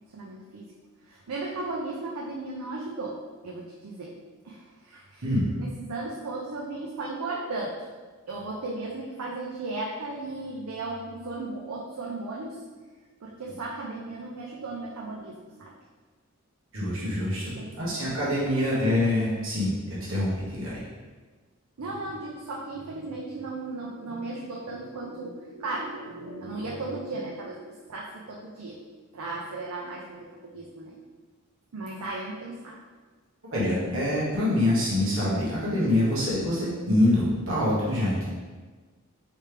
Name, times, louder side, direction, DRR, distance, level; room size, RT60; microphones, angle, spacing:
voice 1, 0.1-0.7 1.1-4.2 4.4-5.3 5.6-7.7 8.3-12.6 13.2-15.7 17.4-18.0 21.8-28.8 29.1-31.0 31.7-32.8, right 2 dB, 80° right, -3 dB, 0.6 m, -36 dB
voice 2, 5.2-5.5 16.7-19.7 20.1-20.8 33.5-38.2, left 1 dB, 65° right, -8 dB, 1.3 m, -25 dB
4.4 x 3.3 x 3.3 m, 1.4 s
head